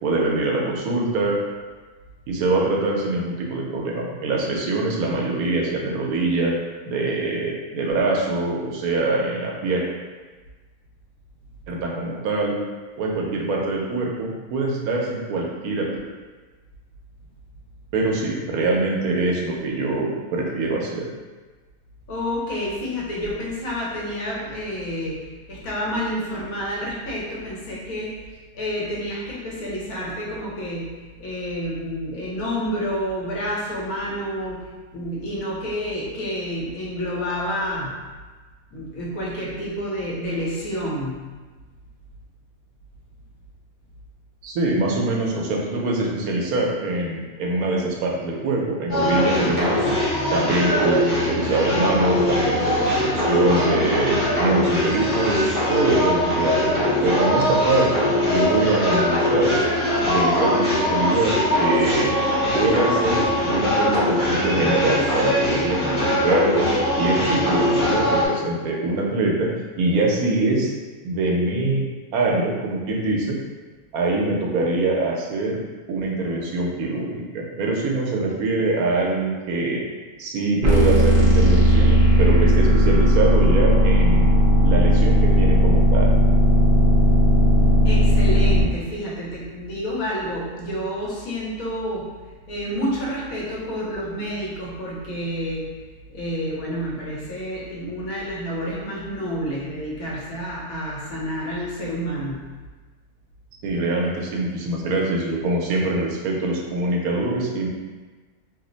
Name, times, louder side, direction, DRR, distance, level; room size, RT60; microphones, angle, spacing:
voice 1, 0.0-1.4 2.3-6.5 6.9-9.9 11.7-12.6 13.0-15.9 17.9-21.1 44.4-49.9 50.3-55.4 55.7-59.5 60.0-62.1 62.5-66.7 67.0-69.5 69.8-70.7 71.0-71.8 72.1-73.4 73.9-75.6 75.9-79.8 80.2-84.3 84.6-86.1 103.6-107.7, right 2 dB, 80° right, -2 dB, 1.1 m, -23 dB
voice 2, 22.1-28.3 28.5-37.9 38.7-41.2 62.6-62.7 87.8-92.1 92.5-95.6 96.1-102.4, equal, 70° left, -5 dB, 1.2 m, -29 dB
sound 1, 48.9-68.3, left 1 dB, 40° left, 0.8 m, -21 dB
sound 2, 80.6-88.6, equal, 45° right, 0.8 m, -16 dB
3.0 x 2.0 x 3.8 m, 1.3 s
omnidirectional pair, 1.5 m